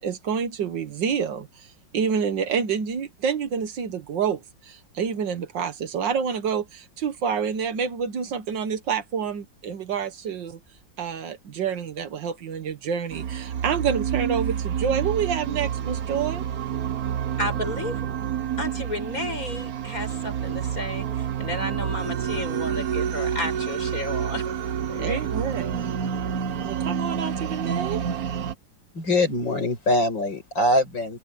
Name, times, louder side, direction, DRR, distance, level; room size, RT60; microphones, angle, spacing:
voice 1, 0.0-10.6 11.0-16.4 25.0-25.9 26.6-28.0, right 7 dB, 70° right, 1.9 m, -28 dB
sound 1, 13.1-28.6, right 8 dB, 55° right, 1.4 m, -28 dB
voice 2, 17.2-18.1 18.6-24.6 24.9-25.3, left 1 dB, 45° left, 7.5 m, -32 dB
voice 3, 28.9-31.2, left 1 dB, 70° left, 7.0 m, -23 dB
open air
omnidirectional pair, 2.1 m